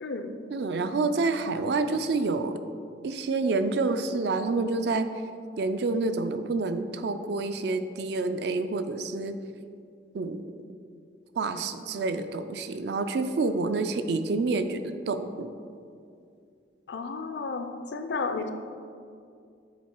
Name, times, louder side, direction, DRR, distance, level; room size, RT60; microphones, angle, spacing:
voice 1, 0.0-0.4 16.9-18.5, left 4 dB, 65° left, 8 dB, 0.4 m, -32 dB
voice 2, 0.5-2.6 3.0-5.1 5.6-9.3 10.1-10.4 11.4-15.5, right 3 dB, 60° right, 9 dB, 0.4 m, -28 dB
7.4 x 3.9 x 4.5 m, 2.4 s
head